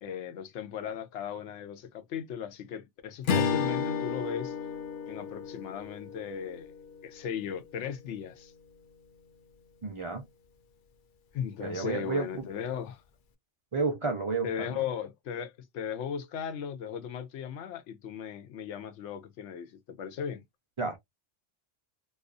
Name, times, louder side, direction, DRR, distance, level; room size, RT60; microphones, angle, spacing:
voice 1, 0.0-4.5 5.1-6.7 7.0-8.5 11.3-13.0 14.4-20.4, left 8 dB, 85° left, 0.9 m, -37 dB
Strum, 3.3-7.9, left 6 dB, 60° left, 0.6 m, -33 dB
voice 2, 9.8-10.2 11.6-12.4 13.7-14.7 20.8-21.0, right 4 dB, 55° right, 0.3 m, -31 dB
2.4 x 2.3 x 2.4 m
omnidirectional pair, 1.2 m